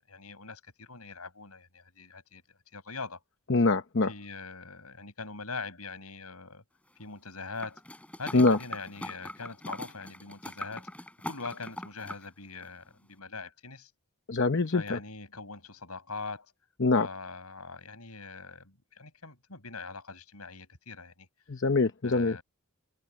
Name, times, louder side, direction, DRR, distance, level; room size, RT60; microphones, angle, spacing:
voice 1, 0.1-2.4 2.7-3.2 4.1-6.6 7.0-7.8 8.2-10.9 11.3-13.9 14.7-16.5 16.9-21.3 22.0-22.4, left 4 dB, 80° left, 6.6 m, -42 dB
voice 2, 3.5-4.1 8.3-8.6 14.3-15.0 16.8-17.1 21.5-22.4, left 3 dB, 55° left, 0.9 m, -24 dB
sound 1, 7.6-12.3 12.6-12.7, left 1 dB, 5° left, 3.9 m, -41 dB
head